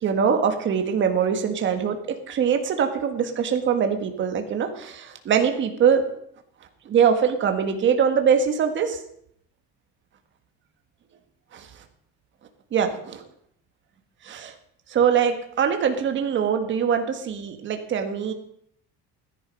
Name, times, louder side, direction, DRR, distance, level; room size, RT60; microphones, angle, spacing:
voice 1, 0.0-6.0 6.8-9.0 11.5-11.7 12.7-13.2 14.2-14.5 14.9-18.3, right 7 dB, 40° right, 6 dB, 1.7 m, -23 dB
15.5 x 10.5 x 5.3 m, 0.70 s
cardioid pair, 140°, 30 cm